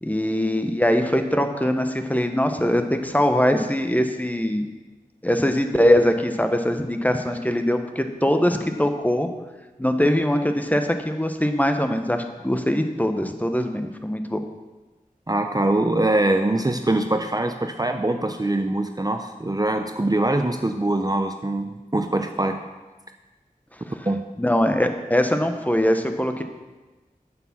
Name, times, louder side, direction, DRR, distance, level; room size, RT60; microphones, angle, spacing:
voice 1, 0.0-4.7 5.2-9.3 9.8-14.4 23.9-24.1 24.4-26.4, equal, 10° left, 6 dB, 1.0 m, -22 dB
voice 2, 15.3-22.6 24.1-24.2, right 2 dB, 25° right, 6 dB, 0.6 m, -23 dB
8.6 x 7.7 x 6.0 m, 1.2 s
wide cardioid pair, 45°, 15 cm